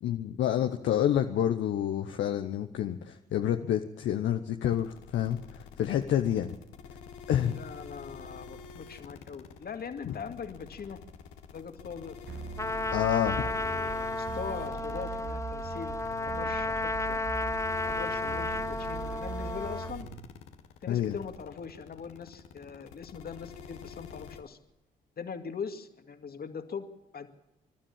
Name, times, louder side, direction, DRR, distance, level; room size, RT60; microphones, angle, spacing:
voice 1, 0.0-5.4 5.8-6.5 7.3-7.6 10.1-10.2 12.9-13.5 20.9-21.2, left 10 dB, 65° left, 6 dB, 1.0 m, -28 dB
sound 1, 4.7-24.4, left 6 dB, 80° left, 1.8 m, -47 dB
voice 2, 7.5-11.0 11.5-12.2 13.3-17.4 17.8-20.1 20.8-24.6 25.2-26.9 27.1-27.3, left 6 dB, 50° left, 7 dB, 2.2 m, -41 dB
sound 2, 12.3-20.3, right 6 dB, 60° right, 1.7 m, -41 dB
Trumpet, 12.6-19.9, left 2 dB, 15° left, 0.9 m, -33 dB
28.0 x 12.5 x 7.4 m, 1.0 s
hypercardioid pair, 45°, 21 cm